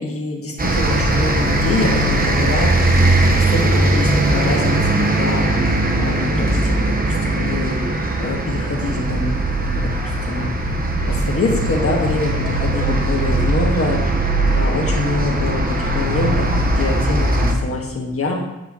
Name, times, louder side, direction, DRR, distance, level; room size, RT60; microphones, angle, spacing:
voice 1, 0.0-2.7 3.3-5.5 6.0-7.8 8.2-9.9 10.2-10.5 11.1-14.0 14.5-18.3, left 2 dB, 50° left, 0 dB, 1.6 m, -25 dB
sound 1, 0.6-17.5, right 1 dB, 30° right, 1.2 m, -19 dB
8.4 x 7.9 x 3.0 m, 0.97 s
cardioid pair, 85°, 29 cm